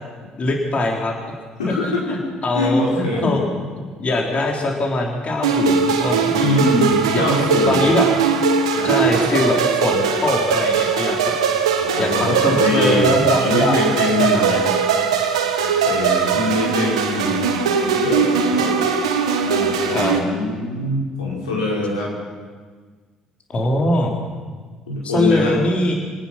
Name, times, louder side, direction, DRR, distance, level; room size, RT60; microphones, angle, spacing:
voice 1, 0.4-1.4 1.8-2.2 2.4-3.4 3.8-6.6 7.1-7.3 7.7-8.0 8.8-11.2 12.0-13.8 14.2-14.8 19.9-20.2 23.5-24.1 25.0-25.9, left 2 dB, 40° left, 1 dB, 3.9 m, -22 dB
voice 2, 1.6-2.1 2.5-3.3 6.4-7.9 8.7-8.9 11.7-13.1 13.4-14.6 15.6-18.7 19.4-22.1 24.9-25.6, left 2 dB, 90° left, -4 dB, 5.6 m, -23 dB
sound 1, 5.4-20.2, right 6 dB, 85° right, 1.8 m, -20 dB
26.5 x 18.5 x 6.1 m, 1.5 s
hypercardioid pair, 55°, 3 cm